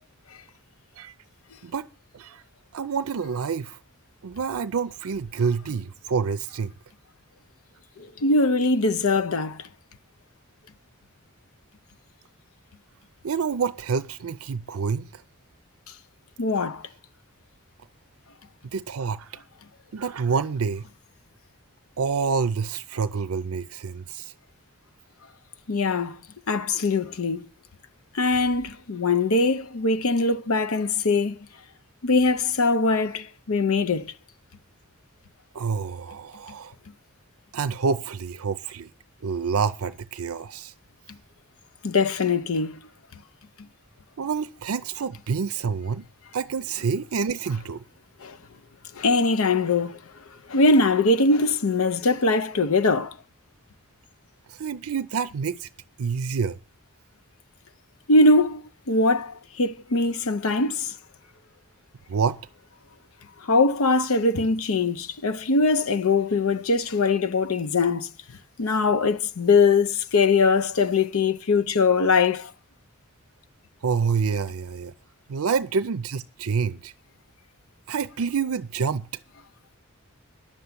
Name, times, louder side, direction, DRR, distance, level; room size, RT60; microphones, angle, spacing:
voice 1, 2.7-3.8 4.2-6.7 13.2-15.2 18.7-19.4 19.9-20.9 22.0-24.3 35.5-36.7 37.5-38.9 39.2-40.7 44.2-46.1 46.3-47.8 54.5-55.7 56.0-56.6 62.1-62.4 73.8-74.9 75.3-76.9 77.9-79.1, right 5 dB, 75° right, 0.5 m, -27 dB
voice 2, 8.0-9.7 16.4-16.9 25.7-26.2 26.5-27.4 28.1-31.4 32.0-34.1 41.8-42.8 48.2-48.4 48.9-50.0 50.5-53.2 58.1-60.9 63.4-68.1 68.6-72.5, left 3 dB, 70° left, 0.7 m, -22 dB
10.5 x 7.0 x 9.5 m
head